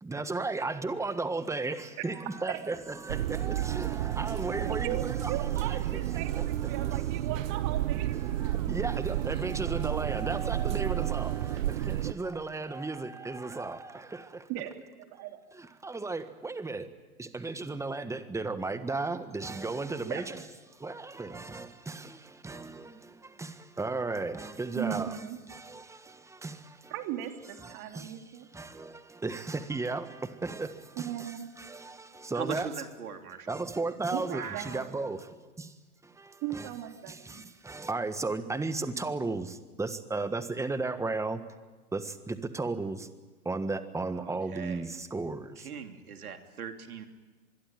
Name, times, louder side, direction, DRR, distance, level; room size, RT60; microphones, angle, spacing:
voice 1, 0.0-7.0 8.2-14.5 15.5-16.9 17.2-20.4 20.7-25.2 25.5-26.9 27.6-28.2 28.5-32.7 33.5-35.7 36.0-36.7 37.1-41.4 41.9-43.1 43.4-45.7, right 3 dB, 5° right, 11 dB, 1.5 m, -35 dB
sound 1, 3.1-12.1, right 13 dB, 60° right, 1.2 m, -31 dB
voice 2, 4.6-8.1 14.5-15.4 20.1-20.4 24.7-25.4 26.9-28.5 31.0-31.5 34.1-34.9 36.4-37.4, right 11 dB, 40° right, 5 dB, 3.3 m, -38 dB
voice 3, 32.3-33.5 34.3-34.9 44.2-44.8 45.6-47.1, right 7 dB, 75° right, 5 dB, 3.2 m, -40 dB
25.0 x 22.0 x 9.1 m, 1.2 s
hypercardioid pair, 115°, 44 cm